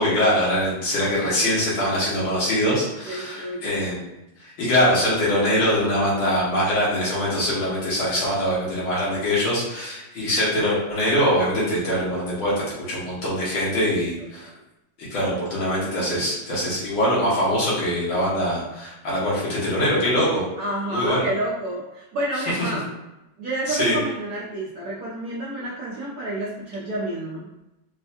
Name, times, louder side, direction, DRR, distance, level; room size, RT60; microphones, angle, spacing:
voice 1, 0.0-4.1 4.4-14.5 15.0-20.4 20.9-21.3 23.7-24.0, equal, 85° left, -7 dB, 2.0 m, -23 dB
voice 2, 3.1-3.9 14.4-14.6 20.6-22.9 23.4-27.5, right 1 dB, 65° right, -5 dB, 1.0 m, -29 dB
4.4 x 2.2 x 2.8 m, 0.95 s
omnidirectional pair, 2.1 m